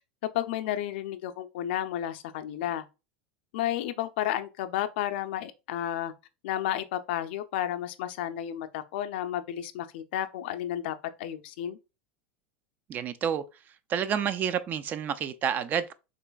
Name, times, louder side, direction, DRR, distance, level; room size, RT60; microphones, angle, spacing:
voice 1, 0.2-2.9 3.5-6.1 6.4-11.8, left 12 dB, 75° left, 0.4 m, -32 dB
voice 2, 12.9-13.4 13.9-15.9, right 8 dB, 30° right, 0.3 m, -29 dB
3.9 x 2.5 x 2.2 m
supercardioid pair, 125°, 6 cm